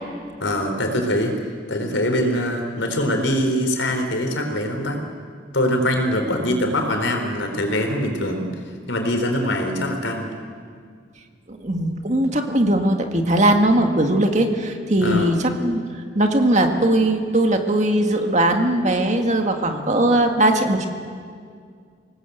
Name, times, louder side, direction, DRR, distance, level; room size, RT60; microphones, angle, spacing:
voice 1, 0.4-1.4 1.7-5.0 5.5-8.5 8.9-10.3 15.0-15.4, left 1 dB, 85° left, 4 dB, 4.1 m, -23 dB
voice 2, 11.5-15.8 16.2-20.9, right 1 dB, 40° right, 4 dB, 1.9 m, -19 dB
27.5 x 18.5 x 8.1 m, 2.1 s
head